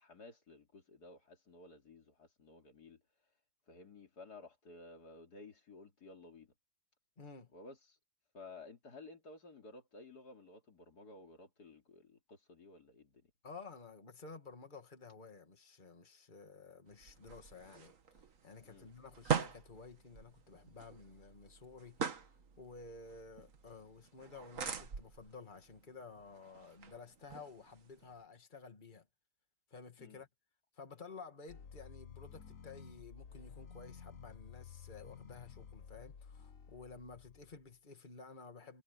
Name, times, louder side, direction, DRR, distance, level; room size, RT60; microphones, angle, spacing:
voice 1, 0.0-3.0 3.7-6.5 7.5-8.0 8.3-13.3 18.6-18.9 30.0-30.2, left 3 dB, 85° left, 3.4 m, -55 dB
voice 2, 7.2-7.5 13.4-17.9 18.4-29.1 29.7-30.3 30.7-38.8, left 4 dB, 30° left, 2.3 m, -53 dB
sound 1, 16.9-28.2, right 7 dB, 55° right, 1.8 m, -43 dB
sound 2, 31.5-37.7, left 7 dB, 60° left, 1.6 m, -53 dB
omnidirectional pair, 1.7 m